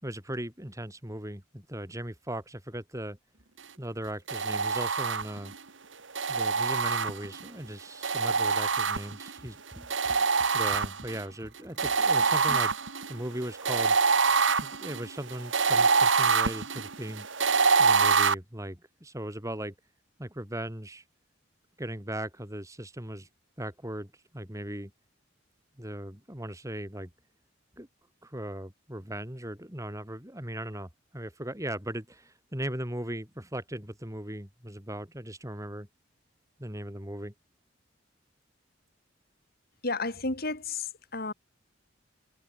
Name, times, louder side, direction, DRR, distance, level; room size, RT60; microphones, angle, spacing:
voice 1, 0.0-3.2 3.8-5.5 6.3-12.7 13.1-14.0 14.6-17.3 17.8-19.7 20.2-21.0 21.8-23.3 23.6-24.9 25.8-27.1 27.8-27.9 28.2-35.9 36.6-37.3, right 1 dB, 15° right, 4.6 m, -38 dB
sound 1, 4.3-5.5 6.2-7.5 8.0-9.4 9.9-11.2 11.8-18.3, right 5 dB, 70° right, 2.2 m, -25 dB
voice 2, 39.8-41.3, left 3 dB, 50° left, 4.9 m, -32 dB
head